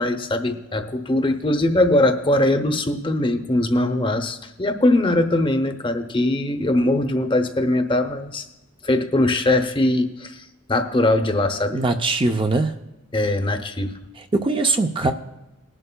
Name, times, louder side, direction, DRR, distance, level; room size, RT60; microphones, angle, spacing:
voice 1, 0.0-8.4 8.8-11.8 13.1-13.9, left 1 dB, 25° left, 7 dB, 0.7 m, -21 dB
voice 2, 11.7-12.7 14.3-15.1, right 3 dB, 25° right, 5 dB, 0.5 m, -21 dB
19.5 x 11.0 x 2.2 m, 1.0 s
head